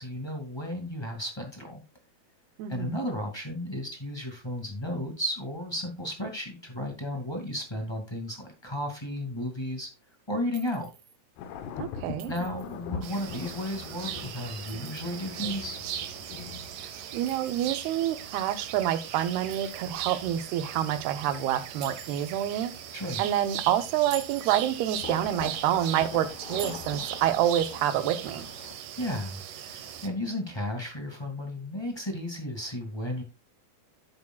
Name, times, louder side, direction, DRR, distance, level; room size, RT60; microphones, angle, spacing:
voice 1, 0.0-1.8 2.7-9.9 10.3-10.9 12.3-15.8 22.9-23.2 29.0-33.2, left 1 dB, 10° left, 2 dB, 1.3 m, -34 dB
voice 2, 2.6-3.1 11.8-12.3 17.1-22.7 23.2-28.5, right 11 dB, 85° right, 10 dB, 3.0 m, -27 dB
Chink clink, 10.5-11.2 12.2-12.8 14.5-15.4 17.3-18.1 19.5-20.2 21.8-22.5 23.9-24.7 26.6-27.2, right 7 dB, 55° right, 1.8 m, -46 dB
sound 1, 11.4-28.7, left 7 dB, 90° left, 3.1 m, -44 dB
sound 2, 13.0-30.1, right 10 dB, 70° right, 2.2 m, -39 dB
12.5 x 8.4 x 2.3 m, 0.27 s
omnidirectional pair, 4.5 m